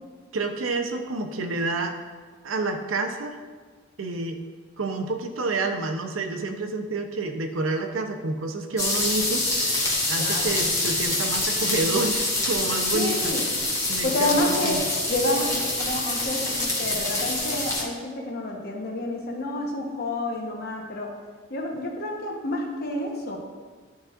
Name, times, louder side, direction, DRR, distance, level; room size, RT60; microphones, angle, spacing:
voice 1, 0.3-1.9 2.4-3.4 4.0-4.4 4.8-13.3 13.9-14.8, right 3 dB, 80° right, 4 dB, 0.7 m, -29 dB
sound 1, 8.8-17.8, left 2 dB, 15° left, 1.1 m, -26 dB
voice 2, 10.2-10.5 12.9-13.4 14.0-14.8 15.1-21.1 21.5-23.4, left 1 dB, 50° left, 0 dB, 1.1 m, -29 dB
11.0 x 4.2 x 2.5 m, 1.5 s
head